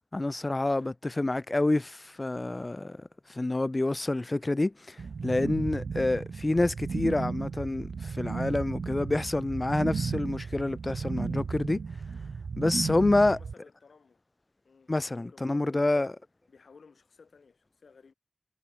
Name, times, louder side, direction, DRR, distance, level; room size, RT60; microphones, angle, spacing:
voice 1, 0.1-3.0 3.3-5.0 5.2-11.8 12.6-13.4 14.9-16.2, left 2 dB, 35° left, 0.4 m, -27 dB
sound 1, 5.0-13.5, right 5 dB, 90° right, 0.3 m, -34 dB
voice 2, 13.1-14.2 14.6-16.1 16.5-18.1, left 5 dB, 85° left, 4.6 m, -57 dB
cardioid pair, 45°, 0 cm